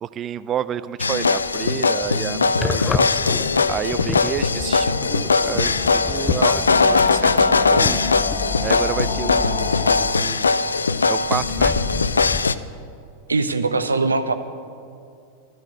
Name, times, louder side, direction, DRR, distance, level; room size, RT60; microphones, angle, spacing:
voice 1, 0.0-3.2 3.7-8.0 8.6-10.5 11.1-11.8, right 9 dB, 30° right, 15 dB, 0.4 m, -30 dB
sound 1, 1.0-12.5, left 4 dB, 75° left, 0.4 m, -20 dB
sound 2, 1.4-1.7 2.0-10.5 10.8-12.4, left 5 dB, 20° left, 0.7 m, -31 dB
sound 3, 3.4-10.1, left 4 dB, 40° left, 2.3 m, -31 dB
voice 2, 13.3-14.3, right 3 dB, 75° right, 9 dB, 0.8 m, -21 dB
14.0 x 12.0 x 6.5 m, 2.4 s
figure-of-eight pair, 90°, 0 cm